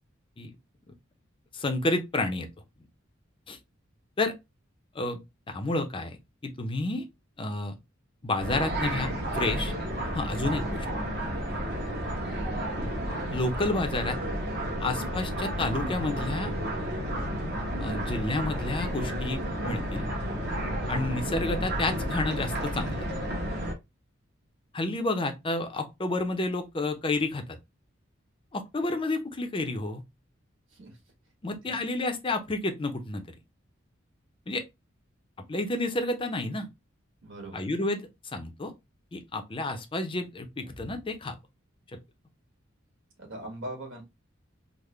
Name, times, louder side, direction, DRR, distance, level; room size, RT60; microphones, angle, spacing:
voice 1, 1.5-2.5 3.5-3.6 4.2-4.3 4.9-5.2 5.5-6.2 6.4-7.0 7.4-7.8 8.2-9.7 10.1-10.9 13.3-14.2 14.8-16.5 17.8-20.1 20.9-23.0 24.7-27.6 28.5-30.0 31.4-33.2 34.5-34.6 35.5-36.7 37.5-38.0 38.3-38.7 39.1-41.3 41.9-42.0, left 2 dB, 25° left, 0.5 m, -30 dB
sound 1, 8.4-23.7, equal, 55° right, 1.1 m, -31 dB
voice 2, 30.7-31.0 31.6-31.9 37.2-37.7 43.2-44.0, right 1 dB, 85° right, 1.5 m, -41 dB
3.6 x 2.1 x 3.1 m
head